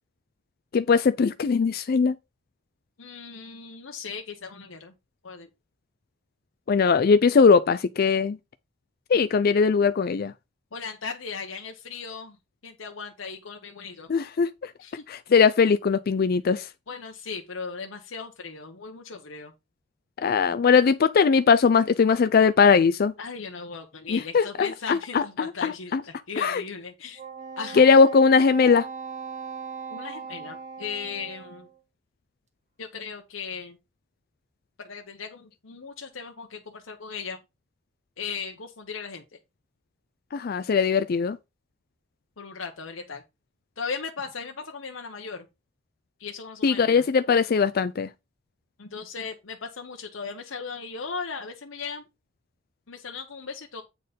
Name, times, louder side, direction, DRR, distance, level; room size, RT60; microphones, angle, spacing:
voice 1, 0.7-2.1 6.7-8.4 9.1-10.3 14.1-14.7 15.1-16.7 20.2-23.1 24.1-26.0 26.4-26.6 27.7-28.9 40.3-41.4 46.6-48.1, left 5 dB, 50° left, 0.4 m, -20 dB
voice 2, 3.0-4.9 5.2-5.5 10.7-12.4 12.6-14.1 14.8-15.0 16.9-19.5 23.2-27.2 27.6-27.9 29.9-31.7 32.8-33.8 34.8-37.4 38.2-39.4 42.4-43.2 43.8-45.5 46.2-47.0 48.8-52.0 52.9-53.8, left 5 dB, 80° left, 1.0 m, -37 dB
Wind instrument woodwind instrument, 27.2-31.7, right 5 dB, 35° right, 1.6 m, -39 dB
8.2 x 4.4 x 5.1 m
head